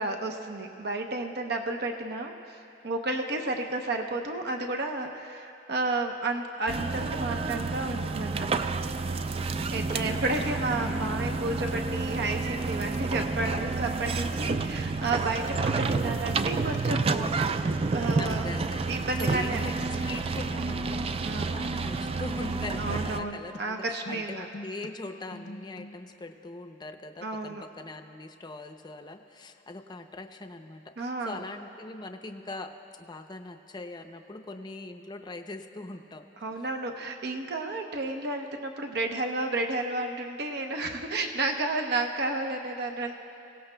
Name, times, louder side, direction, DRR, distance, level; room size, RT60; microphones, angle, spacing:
voice 1, 0.0-2.3 2.8-8.5 9.7-18.5 18.9-19.7 19.9-20.1 21.2-21.6 22.8-24.5 27.2-27.6 31.0-31.4 36.4-43.1, right 2 dB, 60° right, 4 dB, 0.8 m, -32 dB
sound 1, 6.7-23.2, right 3 dB, 30° right, 0.3 m, -30 dB
voice 2, 9.9-10.6 18.2-18.8 19.2-32.7 33.0-36.3, left 2 dB, 25° left, 6 dB, 0.6 m, -41 dB
sound 2, 10.4-10.5 10.7-11.7 12.0-12.3 12.6-13.0 13.4-14.3 14.5-15.5 15.8-16.8 17.1-17.4 17.7-18.1 18.5-19.4 19.8-20.0 20.3-20.5 22.9-23.6 23.9-24.9 25.2-26.0, left 1 dB, 60° left, 0.6 m, -46 dB
23.5 x 17.0 x 2.2 m, 2.8 s
head